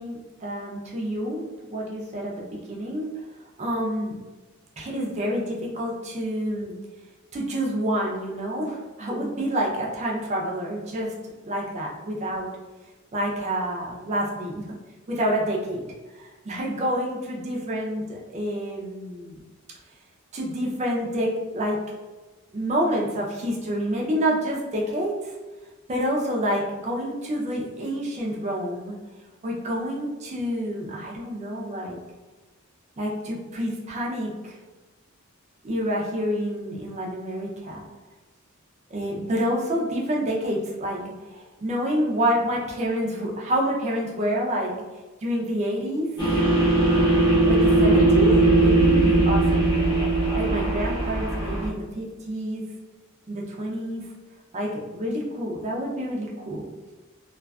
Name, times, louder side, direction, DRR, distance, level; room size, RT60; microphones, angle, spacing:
voice 1, 0.0-3.1 3.6-4.1 4.8-6.8 7.3-11.1 11.4-12.5 13.1-14.7 15.1-15.8 16.2-19.4 20.3-21.8 22.5-25.3 25.9-29.0 29.4-32.0 33.0-34.5 35.6-37.8 38.9-41.0 41.3-44.7 45.2-46.1 47.5-49.8 50.3-52.6 53.3-54.1 54.5-56.7, equal, 30° right, -2 dB, 0.4 m, -28 dB
sound 1, 46.2-51.7, right 2 dB, 20° left, 0.6 m, -19 dB
2.4 x 2.3 x 2.2 m, 1.2 s
head